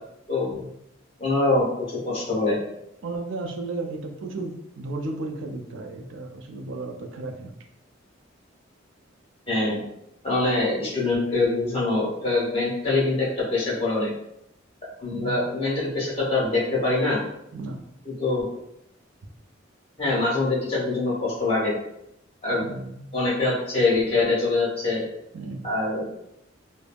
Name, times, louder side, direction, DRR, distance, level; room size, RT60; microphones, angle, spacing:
voice 1, 1.2-2.6 9.5-9.8 10.2-14.1 15.0-17.2 18.2-18.4 20.0-21.7 22.4-22.6 23.1-25.0 25.6-26.0, left 2 dB, 30° left, -6 dB, 1.1 m, -24 dB
voice 2, 3.0-7.5 15.1-15.4 17.5-17.8 22.6-23.1 25.3-25.7, right 2 dB, 75° right, 3 dB, 0.4 m, -34 dB
3.3 x 2.1 x 2.3 m, 0.79 s
head